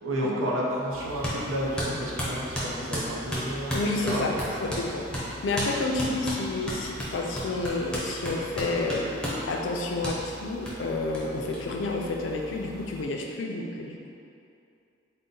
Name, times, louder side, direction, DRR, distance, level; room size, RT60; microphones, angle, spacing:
voice 1, 0.0-3.8 4.0-4.6, equal, 90° right, -4 dB, 0.7 m, -31 dB
sound 1, 0.9-13.0, left 1 dB, 20° right, 1.5 m, -44 dB
sound 2, 1.2-1.4 1.8-4.9 5.1-5.3 5.6-5.7 6.0-9.4 10.0-10.2 10.7-10.8 11.1-11.2 11.5-11.6 11.8-12.6, equal, 5° left, 0.6 m, -32 dB
voice 2, 3.7-9.1 9.5-14.1, left 2 dB, 70° left, 1 dB, 0.4 m, -30 dB
3.9 x 2.1 x 3.7 m, 2.6 s
head